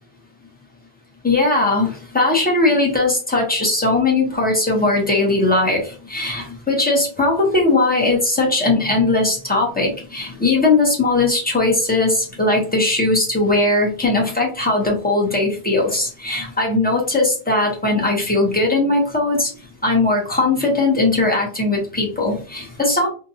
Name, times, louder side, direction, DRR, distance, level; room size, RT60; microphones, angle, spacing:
voice 1, 1.2-19.5 19.8-23.1, left 2 dB, 10° left, -2 dB, 0.7 m, -19 dB
2.7 x 2.2 x 2.7 m, 0.41 s
omnidirectional pair, 1.0 m